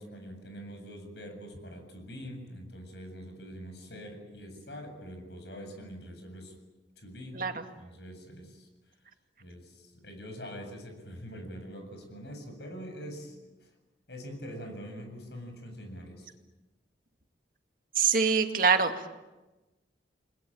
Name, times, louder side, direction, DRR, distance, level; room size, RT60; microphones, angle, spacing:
voice 1, 0.0-6.5 7.0-7.4 7.7-8.7 9.4-13.7 14.1-16.3, equal, 70° left, 5 dB, 7.6 m, -44 dB
voice 2, 7.3-7.7 18.0-19.1, right 5 dB, 50° right, 6 dB, 2.2 m, -25 dB
30.0 x 21.0 x 8.9 m, 1.1 s
head